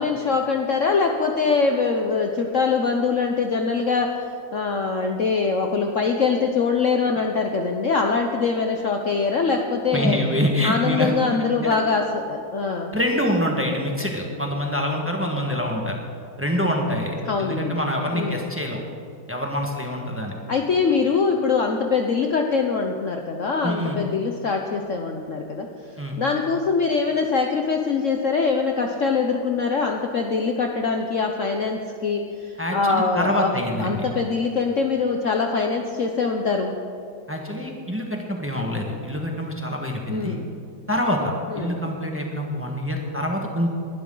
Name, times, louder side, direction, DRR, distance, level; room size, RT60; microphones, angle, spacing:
voice 1, 0.0-4.2 4.5-10.2 10.6-12.9 17.2-17.8 18.1-18.4 20.5-36.7 40.1-40.5 41.5-41.8, left 4 dB, 55° left, 3 dB, 1.0 m, -23 dB
voice 2, 9.9-11.4 11.6-11.8 12.9-16.0 16.4-18.8 19.3-20.4 23.6-24.0 26.0-26.2 32.6-34.0 37.3-40.4 40.9-43.7, equal, 10° right, 0 dB, 1.4 m, -25 dB
20.5 x 12.0 x 3.9 m, 2.6 s
omnidirectional pair, 2.0 m